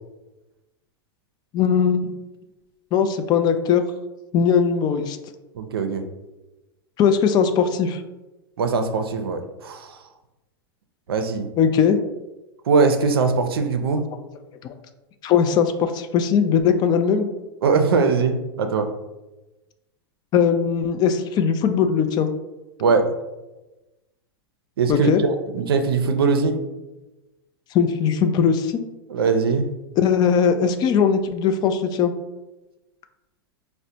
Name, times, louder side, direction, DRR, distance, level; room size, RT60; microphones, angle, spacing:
voice 1, 1.5-2.1 2.9-3.8 4.3-5.2 7.0-8.0 11.6-12.0 14.6-14.7 15.2-17.3 20.3-22.3 24.9-25.2 27.7-28.8 30.0-32.1, left 7 dB, 35° left, 8 dB, 0.3 m, -19 dB
voice 2, 5.5-6.0 8.6-10.0 11.1-11.5 12.7-14.1 17.6-18.9 22.8-23.0 24.8-26.6 29.1-29.7, right 4 dB, 80° right, 7 dB, 0.4 m, -21 dB
4.8 x 2.1 x 2.7 m, 1.1 s
hypercardioid pair, 95°, 12 cm